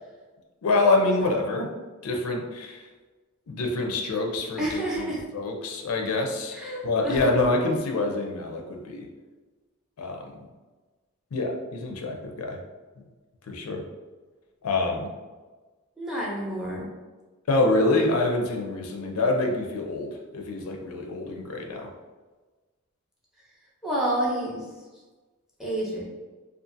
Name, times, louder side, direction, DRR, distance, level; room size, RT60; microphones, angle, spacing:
voice 1, 0.6-1.7 2.0-2.9 3.5-9.1 10.0-10.3 11.3-12.6 13.5-13.8 14.6-15.1 17.5-21.9, left 2 dB, 80° left, 1 dB, 0.4 m, -26 dB
voice 2, 4.6-5.2 6.5-7.6 16.0-16.9 23.8-24.7 25.6-26.0, right 1 dB, ahead, -5 dB, 0.5 m, -29 dB
2.5 x 2.4 x 2.5 m, 1.3 s
head